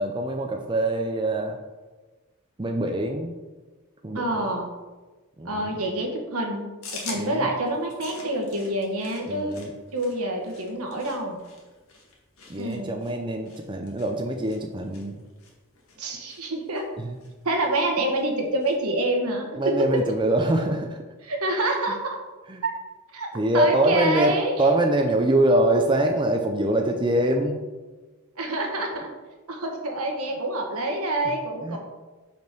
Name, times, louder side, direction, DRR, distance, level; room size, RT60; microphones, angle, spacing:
voice 1, 0.0-1.6 2.6-3.3 4.0-4.5 5.4-5.8 7.1-7.5 9.3-9.7 12.5-15.2 17.0-17.2 19.5-21.0 21.8-22.0 22.5-22.6 23.3-27.7 31.6-31.8, right 1 dB, 20° right, 3 dB, 0.5 m, -24 dB
voice 2, 4.1-4.7 5.4-6.7 7.0-9.6 9.9-11.4 12.6-12.9 16.0-16.8 17.4-19.7 21.2-22.2 22.6-22.7 23.1-23.3 23.5-24.5 28.4-29.1 29.5-31.8, right 1 dB, 80° right, 2 dB, 1.4 m, -27 dB
sound 1, 6.8-18.8, left 3 dB, 70° left, 1.7 m, -46 dB
5.2 x 5.2 x 6.0 m, 1.2 s
head